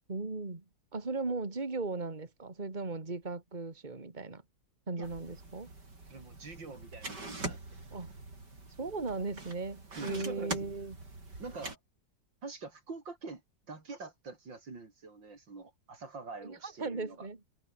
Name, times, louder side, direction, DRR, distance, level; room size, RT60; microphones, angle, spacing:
voice 1, 0.1-0.6 0.9-4.4 4.9-5.7 7.9-8.1 8.8-11.0 16.4-17.4, right 3 dB, 25° right, 2.6 m, -37 dB
sound 1, 5.0-11.8, right 3 dB, 65° right, 6.1 m, -44 dB
voice 2, 6.1-7.6 9.9-10.7 11.4-11.8 12.4-13.4 13.7-17.3, right 4 dB, 85° right, 4.9 m, -45 dB
omnidirectional pair, 2.0 m